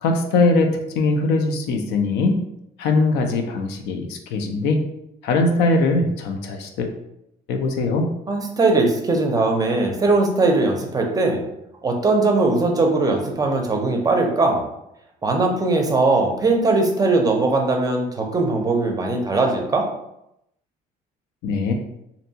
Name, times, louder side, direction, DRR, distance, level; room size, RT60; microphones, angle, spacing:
voice 1, 0.0-2.4 2.8-4.8 5.2-6.9 7.5-8.1 21.4-21.7, left 3 dB, 85° left, 4 dB, 0.4 m, -21 dB
voice 2, 8.3-11.4 11.8-14.6 15.2-19.9, right 3 dB, 20° right, 2 dB, 0.5 m, -20 dB
2.6 x 2.2 x 2.7 m, 0.81 s
cardioid pair, 110°, 17 cm